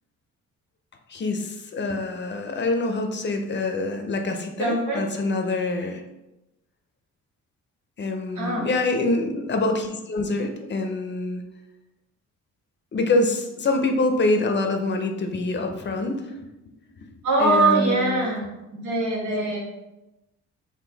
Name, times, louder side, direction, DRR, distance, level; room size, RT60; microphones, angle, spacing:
voice 1, 1.1-6.0 8.0-11.4 12.9-16.4 17.0-17.1 17.4-18.3 19.3-19.5, left 2 dB, 40° left, 5 dB, 0.6 m, -25 dB
voice 2, 4.6-5.0 8.3-8.7 17.2-18.4 18.7-19.6, right 2 dB, 85° right, -3 dB, 1.4 m, -22 dB
3.8 x 2.6 x 3.9 m, 0.95 s
cardioid pair, 90°, 30 cm